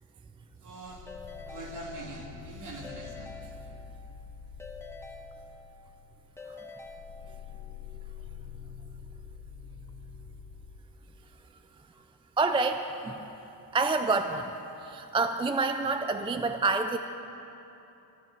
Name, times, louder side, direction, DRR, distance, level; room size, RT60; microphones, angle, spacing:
voice 1, 0.6-1.0 1.5-3.5, right 2 dB, 45° right, 0 dB, 2.3 m, -43 dB
sound 1, 0.9-6.4 6.8-10.8, left 8 dB, 65° left, 1.0 m, -46 dB
Keyboard (musical) / Ringtone, 1.1-2.4 2.8-4.2 4.6-5.9 6.4-7.7, left 2 dB, 5° left, 1.2 m, -47 dB
voice 2, 12.4-13.3 13.7-14.5 14.8-17.0, right 3 dB, 15° right, 7 dB, 0.3 m, -27 dB
13.0 x 12.0 x 7.5 m, 2.9 s
cardioid pair, 160°, 41 cm